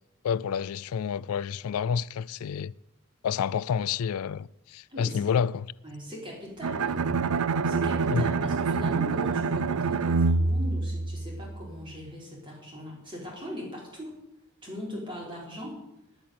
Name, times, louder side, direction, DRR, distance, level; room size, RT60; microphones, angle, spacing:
voice 1, 0.2-2.7 3.2-5.7 8.1-8.3, left 7 dB, 85° left, 0.4 m, -29 dB
voice 2, 4.9-5.2 5.8-7.3 7.6-14.1 14.6-15.8, equal, 20° right, 4.4 m, -40 dB
Bowed string instrument, 6.6-11.6, right 4 dB, 80° right, 0.6 m, -26 dB
10.5 x 8.6 x 9.4 m
head